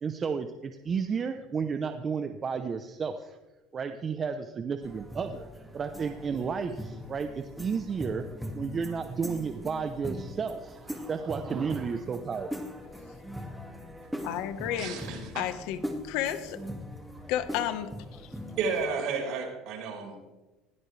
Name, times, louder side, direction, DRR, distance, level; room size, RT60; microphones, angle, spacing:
voice 1, 0.0-3.4 3.7-5.5 5.7-8.3 8.5-12.5, right 5 dB, 30° right, 7 dB, 0.9 m, -32 dB
sound 1, 4.8-18.9, equal, ahead, 2.2 m, -41 dB
voice 2, 14.2-15.0 15.3-16.6 17.3-17.9, left 11 dB, 75° left, 10 dB, 1.4 m, -31 dB
voice 3, 14.8-15.5 18.6-20.4, right 5 dB, 60° right, 0 dB, 5.3 m, -33 dB
20.0 x 16.5 x 3.4 m, 1.1 s
cardioid pair, 130°, 0 cm